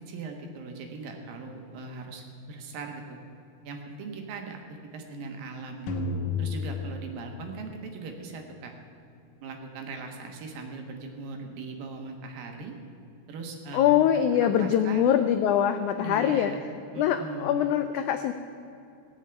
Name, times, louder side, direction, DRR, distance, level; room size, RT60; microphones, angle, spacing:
voice 1, 0.1-3.2 3.6-4.6 4.9-6.0 6.4-8.7 9.4-12.8 13.3-15.2 16.0-16.6 16.9-17.6, right 4 dB, 75° right, 3 dB, 3.2 m, -39 dB
sound 1, 5.9-8.0, left 4 dB, 65° left, 2.4 m, -32 dB
voice 2, 13.7-16.5 17.0-18.3, left 10 dB, 85° left, 8 dB, 1.7 m, -23 dB
17.5 x 7.4 x 8.9 m, 2.7 s
omnidirectional pair, 4.2 m